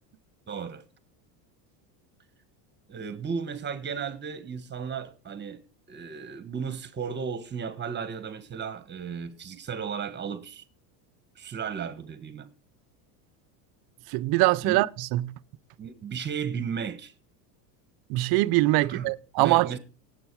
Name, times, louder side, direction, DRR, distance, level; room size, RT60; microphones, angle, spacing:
voice 1, 0.5-0.8 2.9-5.6 5.9-10.6 11.3-12.5 14.6-14.8 15.8-17.1 18.8-19.1 19.4-19.8, right 6 dB, 20° right, 1.4 m, -34 dB
voice 2, 14.1-15.3 18.1-19.8, right 19 dB, 50° right, 0.6 m, -23 dB
17.5 x 7.9 x 4.7 m
supercardioid pair, 140°, 48 cm